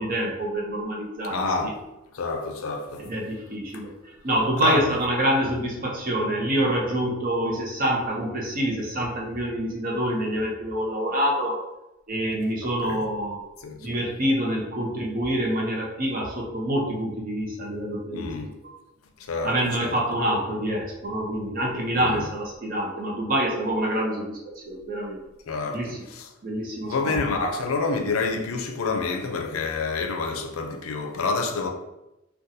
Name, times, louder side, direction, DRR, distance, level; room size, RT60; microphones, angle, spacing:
voice 1, 0.0-1.4 1.6-1.7 3.0-3.9 4.2-11.6 12.1-13.4 13.8-18.4 19.4-24.4 24.7-25.2 25.7-26.0 26.4-27.2, right 1 dB, 45° right, 0.7 m, -26 dB
voice 2, 1.3-1.7 2.1-3.1 3.7-3.8 4.6-4.9 12.8-13.0 13.6-13.8 18.1-18.5 19.2-19.5 19.8-20.0 21.9-22.2 25.5-25.8 26.1-26.3 26.9-31.7, left 4 dB, 90° left, 0.5 m, -28 dB
3.9 x 2.3 x 2.6 m
head